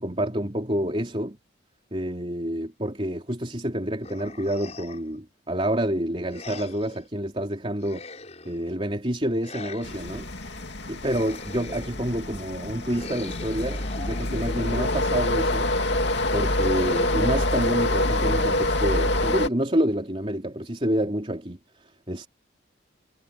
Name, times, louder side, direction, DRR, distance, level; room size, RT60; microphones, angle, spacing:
voice 1, 0.0-1.4 1.9-8.0 8.5-10.6 10.9-15.7 16.3-21.6 22.1-22.3, equal, 30° right, 3.4 m, -28 dB
sound 1, 4.0-5.2 6.3-7.1 7.8-8.7 9.4-10.3 11.0-12.1 12.9-14.9 16.5-18.9, left 2 dB, 35° left, 7.2 m, -41 dB
sound 2, 9.8-19.5, left 1 dB, 60° left, 2.7 m, -26 dB
head